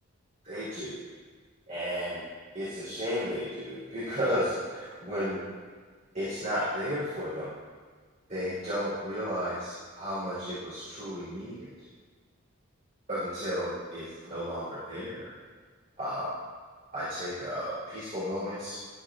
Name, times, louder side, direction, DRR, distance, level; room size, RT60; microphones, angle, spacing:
voice 1, 0.4-1.0 1.7-2.2 2.5-5.4 6.1-7.5 8.3-11.7 13.1-15.3 16.0-16.3 16.9-18.8, equal, 35° right, -11 dB, 3.6 m, -33 dB
13.0 x 12.5 x 2.5 m, 1.5 s
head